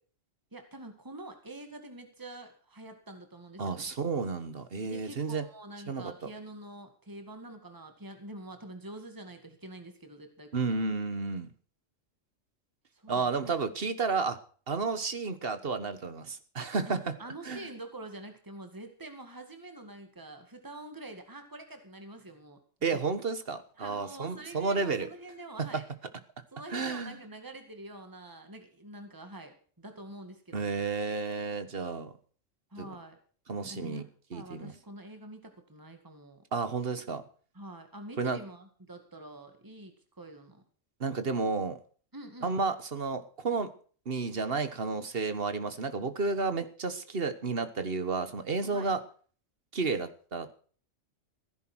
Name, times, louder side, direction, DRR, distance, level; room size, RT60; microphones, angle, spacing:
voice 1, 0.5-3.9 4.8-10.8 12.9-13.2 16.9-22.6 22.9-23.0 23.8-25.8 26.5-30.9 32.7-33.2 33.6-36.4 37.5-40.6 42.1-42.5 48.7-48.9, right 2 dB, 15° right, 6 dB, 2.1 m, -46 dB
voice 2, 3.6-5.4 5.9-6.1 10.5-11.5 13.1-14.4 14.7-17.1 17.4-17.7 22.8-25.1 26.7-27.2 30.5-32.1 32.8-33.0 33.5-34.7 36.5-37.2 38.2-38.4 41.0-41.8 42.4-43.7 44.0-49.0 49.7-50.6, right 4 dB, 50° right, 11 dB, 1.5 m, -32 dB
15.5 x 10.5 x 6.2 m, 0.43 s
omnidirectional pair, 1.3 m